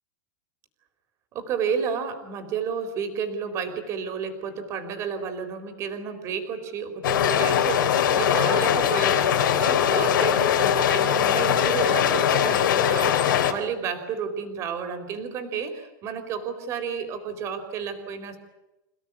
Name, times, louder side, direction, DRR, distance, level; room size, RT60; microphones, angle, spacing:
voice 1, 1.3-18.4, right 6 dB, 25° right, 7 dB, 4.2 m, -31 dB
sound 1, 7.0-13.5, left 9 dB, 80° left, 4.1 m, -21 dB
28.0 x 17.0 x 9.8 m, 0.99 s
supercardioid pair, 170°, 11 cm